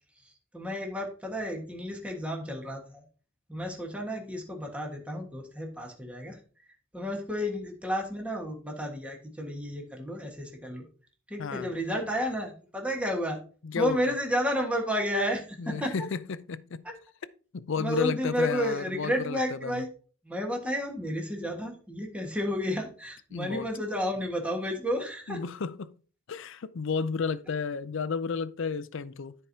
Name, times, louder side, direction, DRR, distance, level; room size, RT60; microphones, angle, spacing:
voice 1, 0.5-3.0 3.5-6.4 6.9-10.9 11.3-13.4 13.7-15.9 16.8-16.9 17.8-19.9 20.2-25.4, equal, 5° right, 1.5 m, -31 dB
voice 2, 11.4-11.7 13.6-14.1 15.6-16.8 17.5-19.8 23.3-23.7 25.3-25.9 26.3-29.4, left 5 dB, 65° left, 0.5 m, -32 dB
13.5 x 4.6 x 2.8 m
head